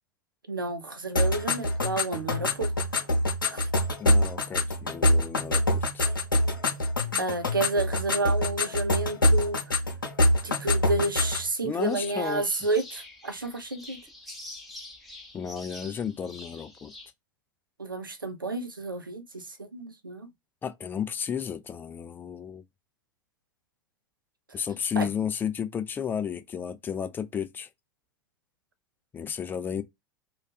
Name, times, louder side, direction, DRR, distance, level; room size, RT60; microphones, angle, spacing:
voice 1, 0.5-2.7 3.5-3.7 7.2-9.6 10.4-14.0 17.8-20.3 25.0-25.1, right 2 dB, 90° right, 0.5 m, -30 dB
sound 1, 1.1-11.5, left 1 dB, 85° left, 0.8 m, -25 dB
voice 2, 4.0-6.0 11.6-12.4 15.3-16.9 20.6-22.6 24.5-27.7 29.1-29.8, left 7 dB, 20° left, 0.3 m, -33 dB
sound 2, 11.8-17.1, left 2 dB, ahead, 0.7 m, -46 dB
2.4 x 2.3 x 2.3 m
figure-of-eight pair, 85°, 11 cm